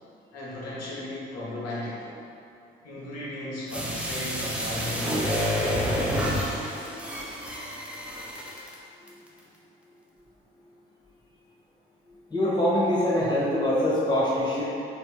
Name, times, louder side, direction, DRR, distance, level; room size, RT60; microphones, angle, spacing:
voice 1, 0.3-2.1 2.8-5.2 5.5-5.8, left 1 dB, 60° left, -7 dB, 1.0 m, -35 dB
sound 1, 3.7-8.7 9.1-9.2, equal, 5° right, 0.6 m, -29 dB
voice 2, 12.3-14.6, left 1 dB, 15° left, -8 dB, 1.4 m, -24 dB
4.2 x 3.0 x 2.4 m, 2.6 s
figure-of-eight pair, 45°, 29 cm